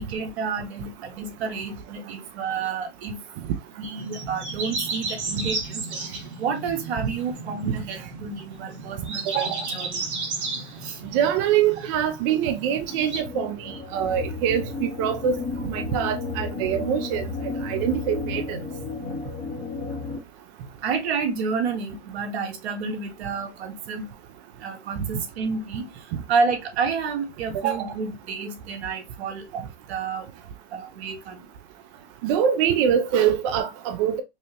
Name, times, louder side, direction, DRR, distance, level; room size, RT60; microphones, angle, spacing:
voice 1, 0.0-3.2 3.8-6.0 6.4-10.0 10.8-11.0 20.8-24.1 24.6-25.9 26.3-30.3 30.7-31.4, right 5 dB, 70° right, 1.3 m, -29 dB
sound 1, 4.0-13.2, right 3 dB, 85° right, 2.1 m, -34 dB
voice 2, 11.1-17.2 17.6-18.6 32.2-34.2, right 9 dB, 30° right, 0.4 m, -24 dB
sound 2, 12.9-20.2, left 3 dB, 20° left, 0.7 m, -33 dB
5.3 x 2.0 x 2.7 m
supercardioid pair, 145°, 33 cm